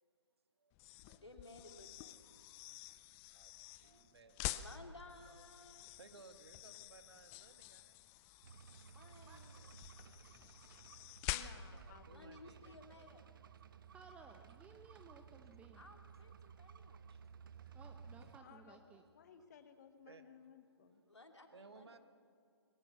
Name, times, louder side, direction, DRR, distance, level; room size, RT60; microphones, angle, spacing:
voice 1, 0.6-1.2 1.6-1.8 3.3-4.6 5.2-8.2 11.5-13.9 14.9-15.1 15.4-15.5 17.1-17.8 18.2-18.6 18.9-19.1 20.1-20.2 21.5-22.0, right 4 dB, 65° right, 8 dB, 1.6 m, -63 dB
sound 1, 0.7-11.9, left 14 dB, 15° left, 0.4 m, -48 dB
voice 2, 1.2-2.2 4.5-5.9 8.9-9.6 12.1-13.2 15.7-17.1 21.0-22.0, left 2 dB, 85° left, 3 dB, 3.0 m, -58 dB
sound 2, 8.4-18.4, right 6 dB, 50° right, 0.8 m, -57 dB
voice 3, 11.3-12.8 18.4-18.8 19.1-21.0, left 8 dB, 40° left, 9 dB, 1.4 m, -60 dB
voice 4, 13.9-15.8 17.7-19.0, right 4 dB, 10° right, 5 dB, 0.8 m, -59 dB
21.0 x 17.5 x 7.1 m, 2.2 s
figure-of-eight pair, 140°, 14 cm